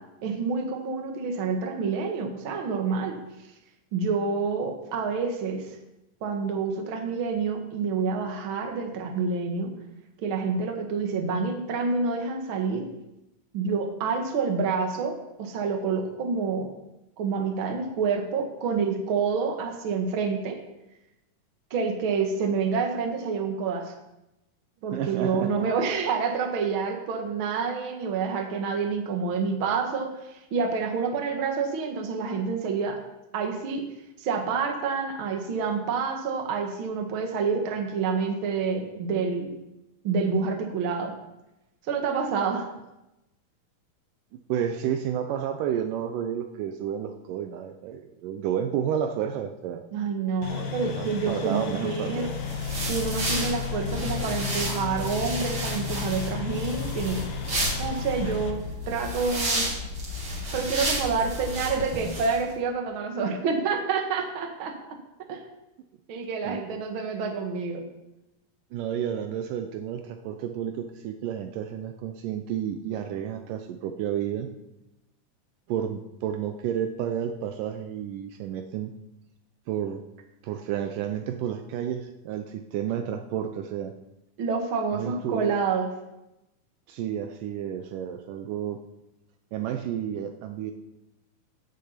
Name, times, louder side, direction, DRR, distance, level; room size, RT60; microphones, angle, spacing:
voice 1, 0.2-3.2 3.9-5.8 6.2-9.7 10.2-12.9 13.5-16.7 17.2-20.6 21.7-23.9 24.8-33.0 33.3-33.8 34.2-39.5 40.0-41.1 41.9-42.7 49.9-52.3 52.9-57.3 57.8-59.7 60.5-64.7 65.3-65.4 66.1-67.8 84.4-85.9, right 5 dB, 45° right, 4 dB, 1.8 m, -28 dB
voice 2, 24.9-25.7 44.5-49.8 50.7-52.3 66.4-66.6 68.7-74.5 75.7-78.9 79.7-80.0 80.4-83.9 84.9-85.5 86.9-88.8 89.5-90.7, right 9 dB, 75° right, 6 dB, 2.2 m, -31 dB
sound 1, 50.4-58.5, left 8 dB, 75° left, 2.9 m, -34 dB
sound 2, 52.2-62.4, equal, 30° right, 3.2 m, -31 dB
16.0 x 7.3 x 5.7 m, 0.92 s
omnidirectional pair, 4.0 m